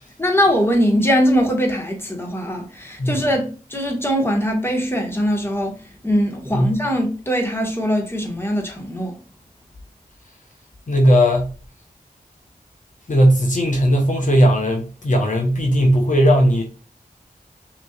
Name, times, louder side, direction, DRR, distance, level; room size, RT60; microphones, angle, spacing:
voice 1, 0.2-5.8 6.0-9.2, equal, 15° left, 1.6 m, -21 dB
voice 2, 10.9-11.5 13.1-16.6, equal, 55° left, 1.2 m, -17 dB
5.8 x 3.2 x 2.4 m
cardioid pair, 40°, 15 cm